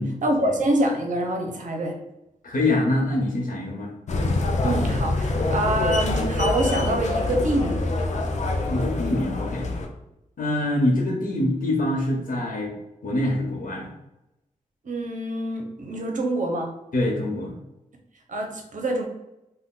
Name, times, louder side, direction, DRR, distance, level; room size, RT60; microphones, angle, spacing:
voice 1, 0.2-2.0 4.6-7.8 14.8-16.7 18.3-19.1, right 1 dB, 65° right, 2 dB, 0.7 m, -25 dB
voice 2, 2.4-4.4 8.7-9.7 10.4-12.7 13.0-13.9 16.9-17.6, left 1 dB, 80° left, 0 dB, 0.8 m, -25 dB
sound 1, 4.1-9.9, left 2 dB, 60° left, 0.5 m, -25 dB
2.5 x 2.2 x 3.7 m, 0.90 s
wide cardioid pair, 85°, 14 cm